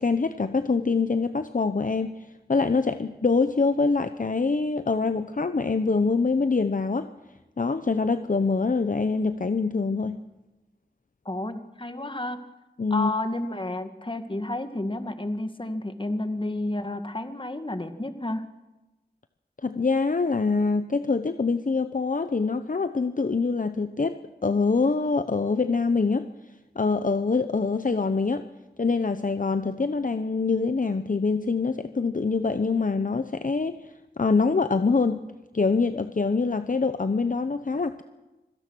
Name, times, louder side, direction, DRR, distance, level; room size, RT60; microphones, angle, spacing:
voice 1, 0.0-7.1 7.6-10.1 12.8-13.1 19.6-26.3 26.8-28.5 28.8-33.9 34.2-35.2 35.5-38.0, left 4 dB, 50° left, 10 dB, 0.8 m, -25 dB
voice 2, 11.2-12.4 12.9-18.4, left 2 dB, 30° left, 8 dB, 1.6 m, -31 dB
25.0 x 17.0 x 6.2 m, 1.1 s
wide cardioid pair, 50°, 18 cm